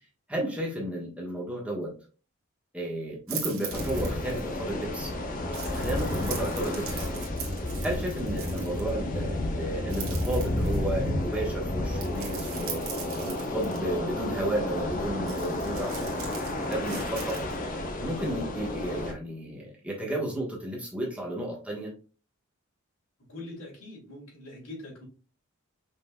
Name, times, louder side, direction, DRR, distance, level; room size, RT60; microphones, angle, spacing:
voice 1, 0.3-1.9 2.7-5.1 5.6-7.3 7.8-12.8 13.2-16.1 16.6-17.5 18.0-21.9, right 1 dB, 5° right, -3 dB, 1.1 m, -33 dB
sound 1, 3.3-4.5 5.5-8.9 9.9-11.0 12.0-13.8 15.3-17.6, right 7 dB, 75° right, 1.5 m, -40 dB
sound 2, 3.7-19.1, left 1 dB, 40° left, 0.7 m, -31 dB
voice 2, 23.3-25.0, left 2 dB, 90° left, -3 dB, 2.6 m, -43 dB
5.4 x 3.8 x 2.2 m, 0.35 s
head